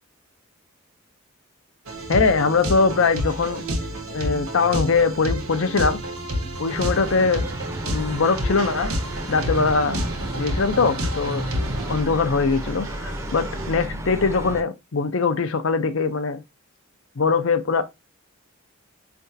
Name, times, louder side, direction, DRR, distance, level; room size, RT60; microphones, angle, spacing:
sound 1, 1.9-12.0, equal, 80° right, 1.3 m, -29 dB
voice 1, 2.1-3.6 4.1-6.0 6.6-7.5 7.9-8.9 9.3-10.0 10.3-11.5 11.9-16.4 17.2-17.8, left 4 dB, 65° left, 0.6 m, -22 dB
sound 2, 6.7-14.6, right 1 dB, 15° right, 0.7 m, -33 dB
sound 3, 8.5-13.9, right 3 dB, 65° right, 1.0 m, -41 dB
4.8 x 3.4 x 2.7 m
head